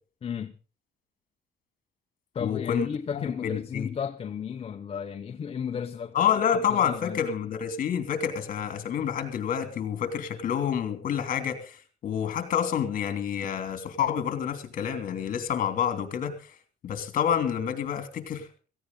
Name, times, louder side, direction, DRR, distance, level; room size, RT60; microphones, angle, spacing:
voice 1, 0.2-0.5 2.3-6.1 6.7-7.2, left 7 dB, 35° left, 0.8 m, -34 dB
voice 2, 2.4-3.9 6.1-16.6 16.8-18.6, left 8 dB, 55° left, 3.0 m, -28 dB
17.0 x 15.5 x 4.0 m
cardioid pair, 110°, 17 cm